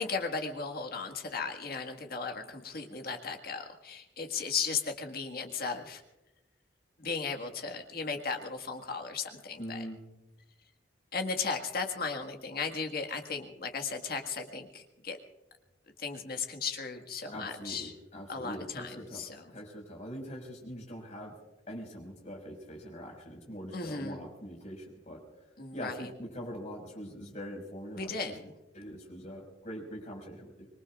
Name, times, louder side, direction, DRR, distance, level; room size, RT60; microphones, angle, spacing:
voice 1, 0.0-6.0 7.0-9.8 11.1-15.2 16.0-17.9 18.3-19.5 23.7-24.2 25.6-26.1 28.0-28.5, left 5 dB, 55° left, 4 dB, 1.7 m, -36 dB
voice 2, 9.6-10.0 17.3-21.3 21.7-25.2 25.7-28.3 28.7-30.7, equal, 40° left, 1 dB, 5.3 m, -43 dB
25.0 x 22.0 x 2.4 m, 0.99 s
head